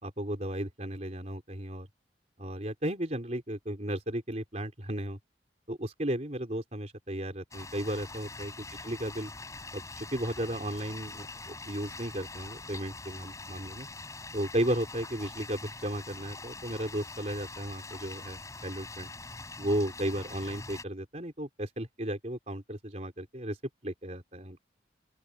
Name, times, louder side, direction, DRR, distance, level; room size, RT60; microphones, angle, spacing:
voice 1, 0.0-1.9 2.4-5.2 5.7-9.3 9.7-13.9 14.3-19.1 19.6-23.6 23.8-24.6, right 1 dB, 35° right, 4.0 m, -34 dB
sound 1, 7.5-20.8, left 3 dB, 15° left, 6.8 m, -44 dB
open air
head